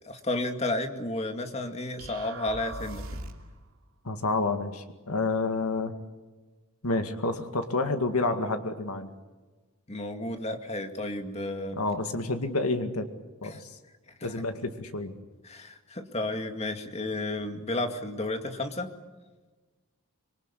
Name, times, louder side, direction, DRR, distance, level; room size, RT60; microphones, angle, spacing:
voice 1, 0.0-3.2 9.9-11.8 13.4-13.6 14.2-14.3 15.4-18.9, left 2 dB, 30° left, 6 dB, 2.2 m, -32 dB
sound 1, 2.0-3.6, right 1 dB, 70° right, 2.7 m, -40 dB
voice 2, 4.0-5.9 6.8-9.1 11.8-13.1 13.4-13.7 14.2-15.1, left 3 dB, 85° left, 7 dB, 2.0 m, -29 dB
26.0 x 22.5 x 8.4 m, 1.2 s
head